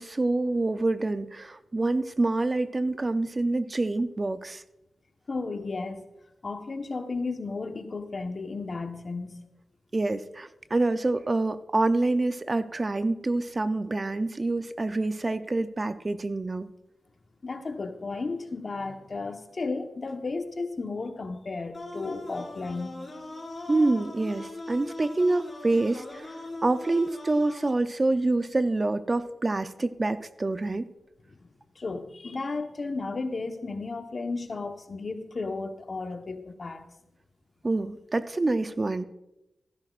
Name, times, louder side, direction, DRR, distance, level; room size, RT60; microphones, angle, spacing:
voice 1, 0.0-4.6 9.9-16.7 23.7-26.3 26.6-30.9 37.6-39.0, right 2 dB, 35° right, 12 dB, 0.5 m, -26 dB
voice 2, 5.3-6.0 6.4-9.5 17.4-22.9 31.4-31.5 31.7-36.9, left 3 dB, 50° left, 6 dB, 1.1 m, -34 dB
sound 1, 21.7-27.7, left 2 dB, 30° left, 3.0 m, -40 dB
15.0 x 12.5 x 2.5 m, 0.92 s
cardioid pair, 50°, 0 cm